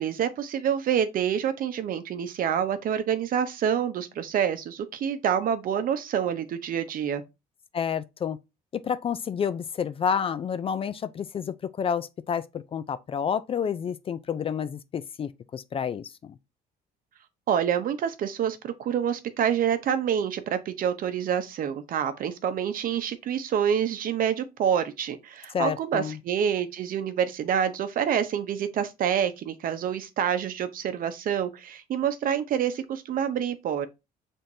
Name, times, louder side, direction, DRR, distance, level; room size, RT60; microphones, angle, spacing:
voice 1, 0.0-7.2 17.5-33.9, right 8 dB, 55° right, 0.8 m, -27 dB
voice 2, 7.7-8.4 8.7-16.4 25.5-26.2, left 7 dB, 35° left, 0.4 m, -29 dB
5.7 x 3.5 x 2.6 m
cardioid pair, 110°, 17 cm